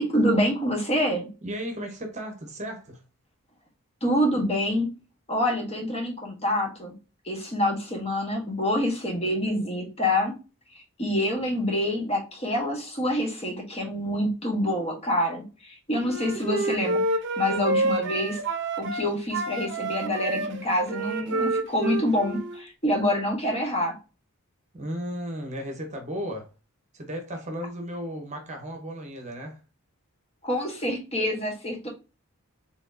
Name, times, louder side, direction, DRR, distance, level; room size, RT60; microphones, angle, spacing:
voice 1, 0.0-1.3 4.0-4.9 5.3-6.9 7.2-10.3 10.7-17.0 17.4-18.4 18.8-24.0 30.4-31.9, left 1 dB, 25° left, 1.2 m, -26 dB
voice 2, 1.4-3.0 24.7-26.5 26.9-29.6, equal, 30° right, 0.9 m, -35 dB
Wind instrument woodwind instrument, 16.0-19.0 19.3-22.6, right 2 dB, 55° right, 0.7 m, -28 dB
4.3 x 3.5 x 2.6 m
head